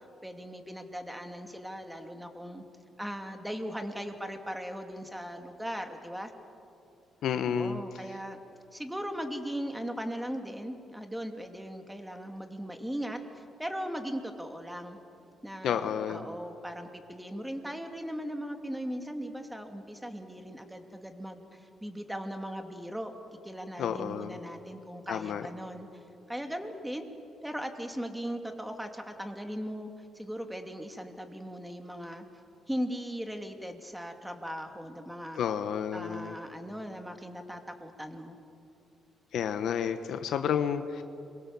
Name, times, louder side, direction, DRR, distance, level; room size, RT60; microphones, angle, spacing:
voice 1, 0.2-2.6 3.0-6.3 7.3-8.4 8.7-15.0 15.4-23.1 23.4-25.9 26.3-27.1 27.4-32.2 32.7-35.4 35.9-38.4, equal, 5° right, 5 dB, 2.5 m, -38 dB
voice 2, 7.2-7.8 15.6-16.3 23.8-24.4 25.1-25.5 35.4-36.4 39.3-41.0, left 8 dB, 75° left, 9 dB, 1.1 m, -31 dB
27.0 x 23.0 x 7.1 m, 2.7 s
cardioid pair, 90°, 0 cm